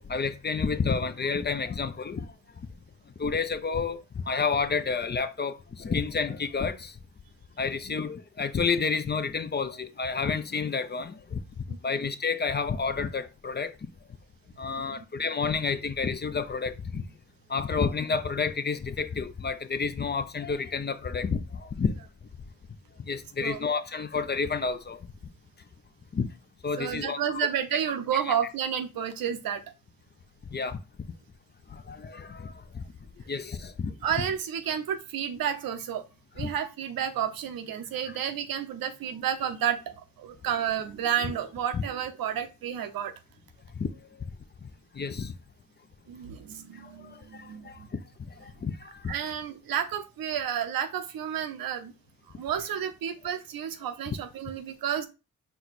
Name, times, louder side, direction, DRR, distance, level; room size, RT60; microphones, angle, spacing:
voice 1, 0.1-2.3 3.2-6.9 7.6-11.4 11.8-13.7 14.6-17.0 17.5-21.9 23.1-25.0 26.1-26.3 26.6-27.2 28.1-28.3 30.5-30.8 31.7-32.8 33.3-33.9 36.4-36.5 41.7-41.8 43.8-43.9 44.6-44.7 44.9-45.3 46.7-47.8 48.3-49.1, left 5 dB, 30° left, 0.5 m, -30 dB
voice 2, 11.7-12.0 14.9-15.0 23.4-23.6 26.8-29.6 34.0-36.0 36.4-43.1 46.1-47.9 49.1-51.9 52.3-55.1, right 9 dB, 80° right, 0.6 m, -31 dB
4.4 x 2.2 x 4.0 m
supercardioid pair, 45°, 35 cm